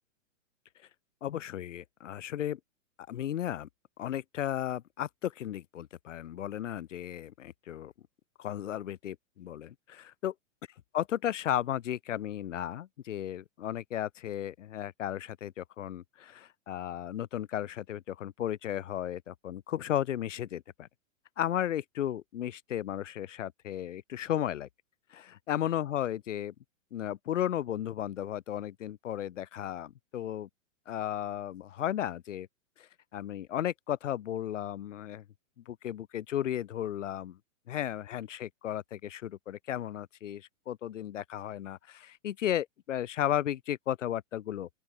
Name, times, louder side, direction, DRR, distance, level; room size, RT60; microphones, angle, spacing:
voice 1, 1.2-2.6 3.1-3.7 4.0-7.9 8.4-10.3 10.9-20.9 21.4-24.7 25.1-26.5 26.9-30.5 30.9-32.5 32.8-35.2 35.7-37.4 37.7-44.7, left 11 dB, 60° left, 3.8 m, -34 dB
open air
hypercardioid pair, 165°, 41 cm